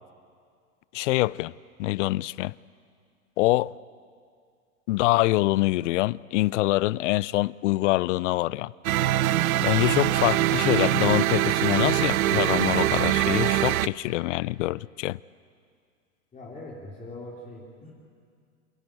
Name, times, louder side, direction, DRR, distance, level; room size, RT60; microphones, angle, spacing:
voice 1, 0.9-1.5 1.8-2.5 3.4-3.7 4.9-8.7 9.6-15.2, left 18 dB, 60° left, 0.5 m, -25 dB
sound 1, 8.8-13.9, right 14 dB, 80° right, 0.6 m, -23 dB
voice 2, 16.3-17.9, left 2 dB, 20° left, 3.2 m, -41 dB
28.0 x 10.5 x 8.9 m
hypercardioid pair, 115°, 42 cm